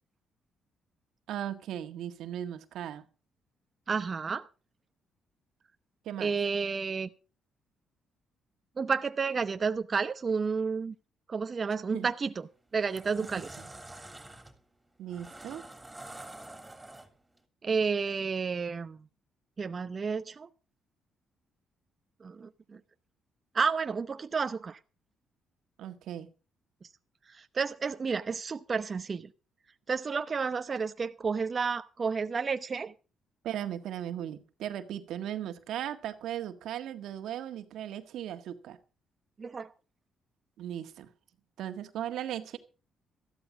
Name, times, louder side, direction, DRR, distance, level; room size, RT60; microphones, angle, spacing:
voice 1, 1.3-3.1 6.1-6.3 11.9-12.1 15.0-15.6 25.8-26.3 33.4-38.8 40.6-41.1 41.6-42.6, right 11 dB, 80° right, 1.7 m, -37 dB
voice 2, 3.9-4.5 6.2-7.1 8.8-10.9 11.3-13.6 17.6-19.1 19.6-20.5 22.2-22.8 23.5-24.8 26.8-26.9 27.3-29.3 29.9-32.9 39.4-39.7, right 5 dB, 40° right, 0.8 m, -31 dB
sound 1, 12.0-12.2 12.7-17.4, right 2 dB, 10° right, 3.3 m, -47 dB
14.0 x 12.5 x 5.1 m
cardioid pair, 90°, 0 cm